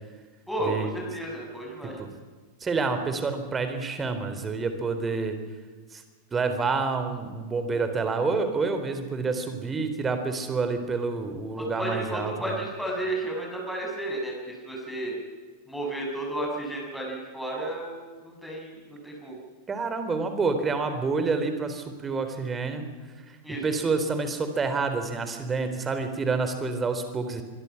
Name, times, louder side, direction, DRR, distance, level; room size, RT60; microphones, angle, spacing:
voice 1, 0.5-1.9 11.6-15.2 15.7-19.4 23.4-23.6, right 1 dB, ahead, -2 dB, 7.1 m, -32 dB
voice 2, 2.6-5.4 5.9-6.0 6.3-12.6 19.7-22.9 23.3-27.4, right 4 dB, 20° right, 8 dB, 3.6 m, -28 dB
26.0 x 23.0 x 5.9 m, 1.4 s
figure-of-eight pair, 90°, 0 cm